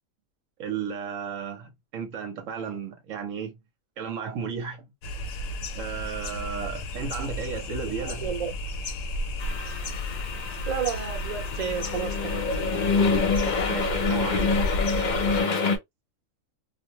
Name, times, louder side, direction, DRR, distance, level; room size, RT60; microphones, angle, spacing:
voice 1, 0.6-3.6 4.0-4.9 5.7-8.3 13.7-14.5, right 6 dB, 70° right, 1.0 m, -34 dB
sound 1, 5.0-15.4, left 2 dB, 70° left, 0.9 m, -33 dB
voice 2, 8.0-8.5 10.7-12.5, right 7 dB, 35° right, 0.8 m, -31 dB
sound 2, 9.4-15.8, left 4 dB, 55° left, 0.5 m, -27 dB
2.5 x 2.1 x 2.7 m
omnidirectional pair, 1.4 m